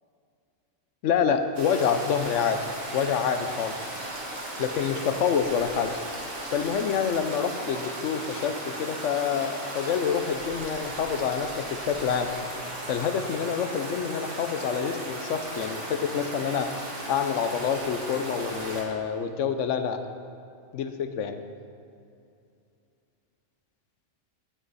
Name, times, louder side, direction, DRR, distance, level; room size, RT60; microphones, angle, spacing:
voice 1, 1.0-2.7 2.9-3.8 4.6-5.9 6.5-12.3 12.9-16.7 17.1-20.0 20.7-21.4, left 7 dB, 85° left, 8 dB, 1.0 m, -27 dB
Stream, 1.5-18.8, right 1 dB, 80° right, 2.0 m, -36 dB
17.5 x 6.1 x 4.1 m, 2.5 s
omnidirectional pair, 1.2 m